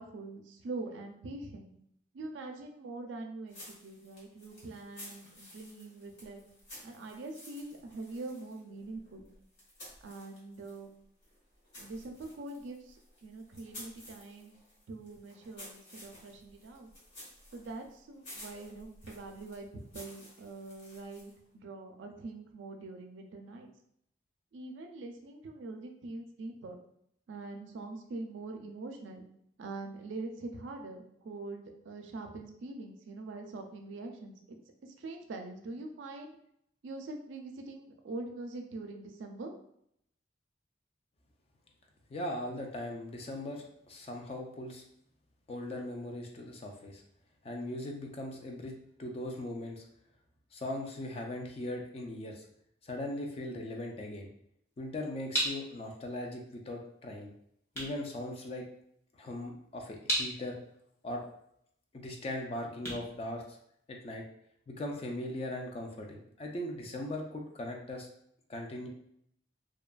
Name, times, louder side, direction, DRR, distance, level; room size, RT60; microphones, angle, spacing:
voice 1, 0.0-1.7 2.1-6.4 6.8-9.2 10.0-10.9 11.8-14.6 14.9-16.9 17.5-23.7 24.5-26.8 27.3-29.2 29.6-34.6 34.8-36.4 36.8-39.5, right 2 dB, 75° right, 3 dB, 0.4 m, -43 dB
sound 1, 3.5-10.9 11.2-21.5, left 1 dB, 65° left, 1.3 m, -53 dB
voice 2, 42.1-44.8 45.5-47.0 47.4-49.8 50.5-52.4 52.8-54.3 54.8-57.3 57.8-58.7 59.2-60.6 61.0-61.2 61.9-63.4 63.9-64.2 64.7-68.1 68.5-68.9, left 1 dB, 30° left, 1 dB, 0.3 m, -39 dB
sound 2, 54.7-64.1, right 1 dB, 15° left, 0.7 m, -39 dB
2.6 x 2.3 x 2.2 m, 0.71 s
head